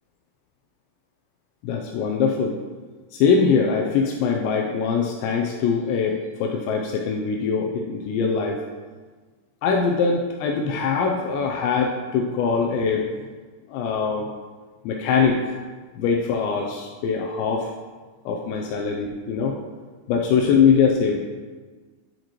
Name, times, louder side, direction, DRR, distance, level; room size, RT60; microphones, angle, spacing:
voice 1, 1.6-2.6 3.1-8.6 9.6-13.1 13.7-14.3 14.9-15.6 16.0-17.7 18.3-19.6 20.1-21.2, left 5 dB, 80° left, 0 dB, 2.7 m, -22 dB
11.5 x 4.9 x 3.0 m, 1.4 s
omnidirectional pair, 5.3 m